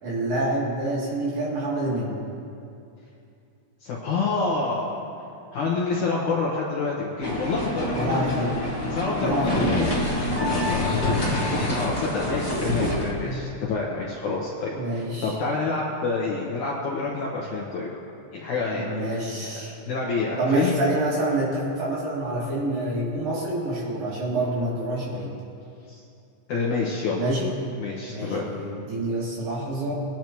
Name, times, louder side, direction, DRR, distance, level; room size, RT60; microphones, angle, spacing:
voice 1, 0.0-2.2 7.9-8.5 9.2-9.9 13.2-13.5 14.7-15.3 18.7-19.7 20.4-25.3 27.2-27.5 28.1-29.9, right 1 dB, 60° right, -7 dB, 4.6 m, -27 dB
voice 2, 3.8-4.9 5.5-8.4 8.9-9.9 10.5-17.9 18.3-19.0 19.4-19.5 19.9-20.8 26.5-27.2 27.8-28.5, left 4 dB, 65° left, -4 dB, 2.2 m, -28 dB
sound 1, 7.2-13.1, left 1 dB, 15° left, 0.7 m, -26 dB
21.5 x 10.0 x 3.1 m, 2.6 s
omnidirectional pair, 4.8 m